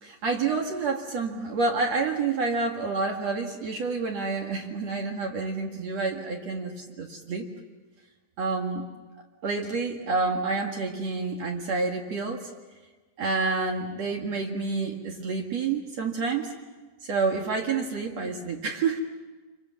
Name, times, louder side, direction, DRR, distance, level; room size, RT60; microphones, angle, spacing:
voice 1, 0.0-7.5 8.4-8.9 9.4-12.4 13.2-16.5 17.0-19.0, right 4 dB, 55° right, 1 dB, 3.0 m, -28 dB
29.0 x 23.5 x 7.3 m, 1.3 s
omnidirectional pair, 3.9 m